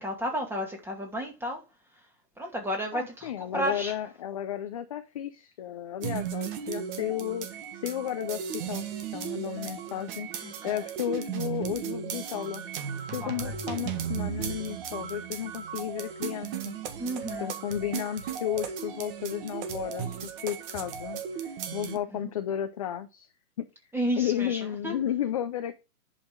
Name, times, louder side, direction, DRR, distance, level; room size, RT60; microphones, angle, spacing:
voice 1, 0.0-1.6 2.4-3.9 10.4-10.8 13.2-13.5 17.0-17.5 22.2-22.3 23.9-24.9, equal, 5° right, 2.3 m, -32 dB
voice 2, 2.9-8.9 9.1-12.6 13.1-16.8 17.4-23.3 23.6-23.7 24.2-25.7, left 11 dB, 25° left, 0.4 m, -33 dB
sound 1, 6.0-22.0, right 8 dB, 35° right, 1.7 m, -36 dB
10.5 x 5.8 x 5.0 m
hypercardioid pair, 140°, 46 cm